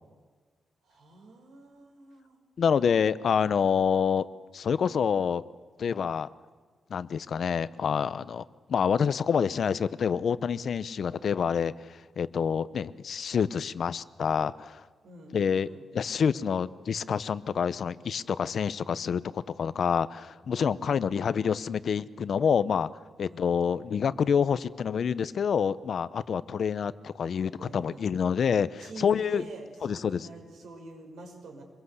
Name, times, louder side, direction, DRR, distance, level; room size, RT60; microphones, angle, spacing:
voice 1, 0.8-2.4 15.0-15.8 20.8-21.3 23.3-23.5 27.6-28.4 28.8-31.6, right 3 dB, 80° right, 2 dB, 6.4 m, -46 dB
voice 2, 2.6-4.2 4.5-5.4 5.8-6.3 6.9-14.8 15.3-15.7 15.9-22.9 23.2-29.4 29.8-30.3, left 7 dB, 55° left, 16 dB, 0.7 m, -27 dB
26.0 x 22.0 x 8.1 m, 1.4 s
wide cardioid pair, 160°, 0 cm